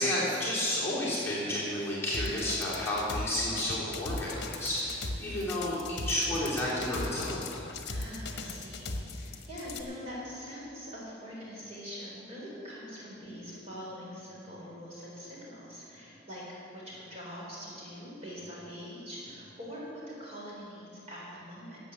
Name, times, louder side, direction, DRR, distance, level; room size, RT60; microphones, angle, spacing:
voice 1, 0.0-7.6, left 1 dB, 15° left, -9 dB, 3.3 m, -31 dB
sound 1, 2.1-9.8, left 2 dB, 55° left, 1.2 m, -37 dB
voice 2, 7.9-16.4 16.7-21.8, equal, 35° right, -6 dB, 4.0 m, -43 dB
13.0 x 8.3 x 8.4 m, 2.8 s
head